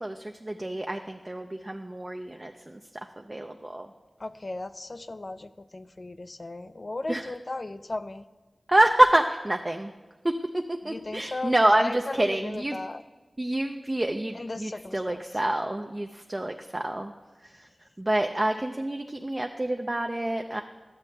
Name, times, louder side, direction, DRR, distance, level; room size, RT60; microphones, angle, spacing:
voice 1, 0.0-3.9 7.1-7.3 8.7-9.9 10.2-12.8 13.4-17.1 17.4-17.7 18.0-20.6, right 1 dB, 25° right, 4 dB, 0.4 m, -27 dB
voice 2, 4.2-8.2 10.9-13.0 14.4-15.2, left 2 dB, 45° left, 13 dB, 0.3 m, -36 dB
11.0 x 7.5 x 3.2 m, 1.3 s
wide cardioid pair, 60°, 0 cm